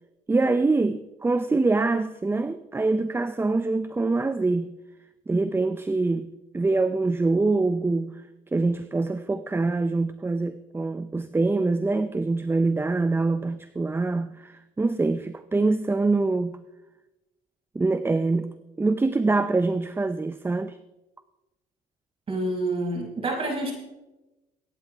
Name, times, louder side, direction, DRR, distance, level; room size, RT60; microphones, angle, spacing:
voice 1, 0.3-4.7 5.3-6.3 6.5-8.2 8.5-16.6 17.7-18.5 18.8-20.8, right 3 dB, 15° right, 11 dB, 0.5 m, -24 dB
voice 2, 22.3-23.7, right 2 dB, 35° right, -2 dB, 5.8 m, -28 dB
23.0 x 9.5 x 3.4 m, 1.0 s
cardioid pair, 110°, 17 cm